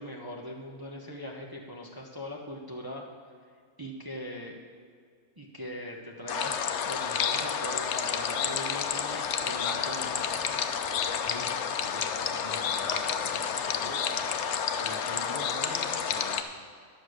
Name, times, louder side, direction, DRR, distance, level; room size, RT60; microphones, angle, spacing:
voice 1, 0.0-3.3 3.8-4.6 5.4-10.1, equal, 20° right, -2 dB, 1.0 m, -41 dB
sound 1, 6.3-16.4, left 7 dB, 70° left, 1.0 m, -30 dB
voice 2, 11.2-14.1 14.8-16.5, left 1 dB, 35° left, 0 dB, 1.3 m, -45 dB
10.5 x 6.5 x 6.5 m, 2.1 s
omnidirectional pair, 1.3 m